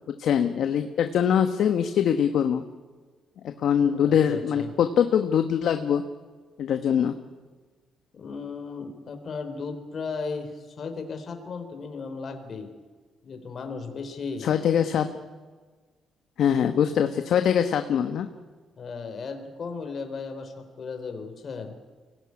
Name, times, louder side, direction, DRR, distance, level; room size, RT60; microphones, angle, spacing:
voice 1, 0.2-2.6 3.4-6.0 6.6-7.1 14.4-15.1 16.4-18.3, left 8 dB, 70° left, 7 dB, 1.2 m, -23 dB
voice 2, 3.9-4.7 8.1-12.7 13.2-14.5 18.8-21.8, left 4 dB, 50° left, 6 dB, 3.7 m, -36 dB
24.0 x 18.0 x 9.7 m, 1.4 s
cardioid pair, 90°, 0 cm